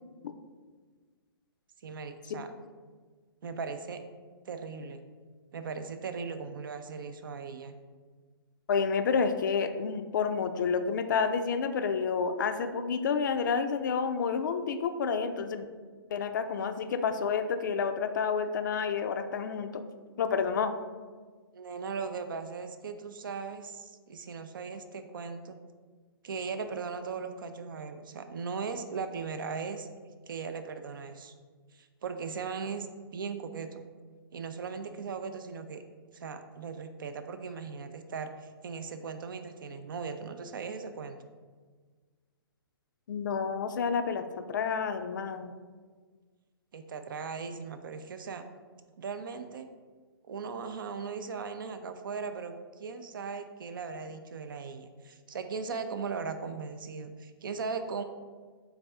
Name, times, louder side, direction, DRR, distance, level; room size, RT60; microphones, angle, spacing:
voice 1, 1.8-2.5 3.4-4.0 4.4-5.0 5.5-7.7 21.5-25.6 26.2-29.9 30.3-31.3 31.7-32.9 33.1-33.9 34.3-35.8 36.1-41.2 46.7-48.4 49.0-49.7 50.3-58.0, right 5 dB, 60° right, 8 dB, 0.4 m, -38 dB
voice 2, 8.7-15.6 16.1-19.8 20.2-20.7 43.1-45.5, left 5 dB, 55° left, 9 dB, 0.4 m, -29 dB
4.0 x 3.4 x 3.4 m, 1.5 s
figure-of-eight pair, 125°, 13 cm